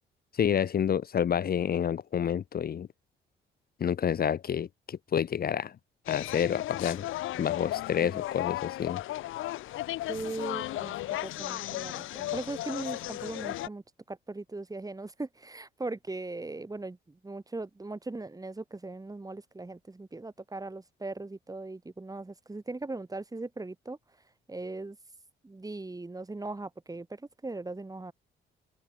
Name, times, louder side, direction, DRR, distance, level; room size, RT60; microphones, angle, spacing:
voice 1, 0.3-2.9 3.8-5.7 6.1-7.0 7.4-9.0, left 8 dB, 50° left, 1.1 m, -29 dB
sound 1, 6.1-13.7, left 15 dB, 90° left, 5.6 m, -35 dB
voice 2, 10.1-10.9 11.2-24.0 24.5-25.0 25.4-28.1, right 2 dB, 20° right, 5.3 m, -39 dB
cardioid pair, 90°, 20 cm